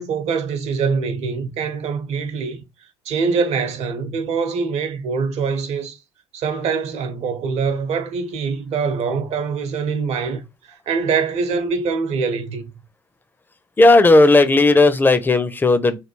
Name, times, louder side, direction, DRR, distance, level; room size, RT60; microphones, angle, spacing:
voice 1, 0.0-2.6 3.0-6.0 6.3-12.7, right 5 dB, 60° right, 0.8 m, -24 dB
voice 2, 13.8-16.0, left 2 dB, 15° left, 0.6 m, -13 dB
3.3 x 2.2 x 3.1 m
hypercardioid pair, 65°, 12 cm